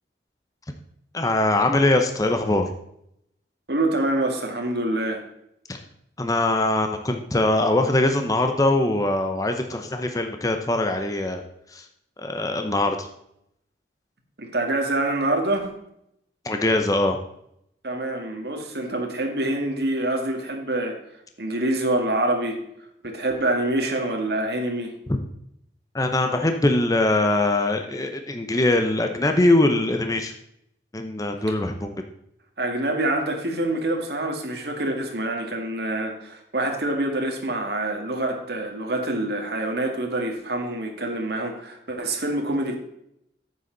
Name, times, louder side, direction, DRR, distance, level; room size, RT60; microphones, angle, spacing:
voice 1, 1.1-2.7 5.7-5.8 6.2-11.4 11.7-11.9 12.2-13.1 16.4-17.2 25.9-30.3 30.9-32.0, left 2 dB, 20° left, 5 dB, 0.7 m, -22 dB
voice 2, 3.7-5.2 14.4-15.7 17.8-21.0 21.4-22.6 23.0-25.0 32.6-42.7, right 1 dB, 65° right, 2 dB, 1.9 m, -26 dB
9.8 x 8.1 x 3.9 m, 0.75 s
head